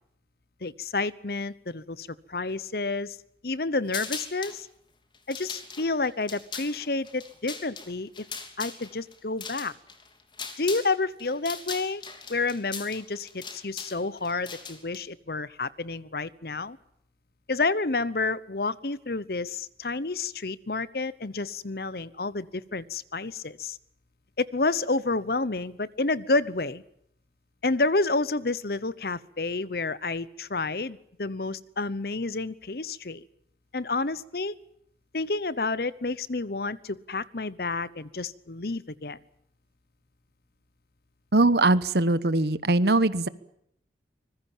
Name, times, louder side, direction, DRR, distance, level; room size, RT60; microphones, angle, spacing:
voice 1, 0.6-3.2 3.4-4.7 5.3-8.1 8.6-9.7 10.6-12.0 12.3-16.8 17.5-23.8 24.4-26.8 27.6-33.2 33.7-34.5 35.1-39.2, left 3 dB, 55° left, 18 dB, 1.0 m, -29 dB
sound 1, 3.9-4.6 5.1-10.9 11.2-15.0, left 5 dB, 25° left, 3.1 m, -39 dB
voice 2, 41.3-43.3, right 2 dB, 60° right, 16 dB, 1.2 m, -21 dB
25.0 x 21.0 x 7.4 m, 0.72 s
head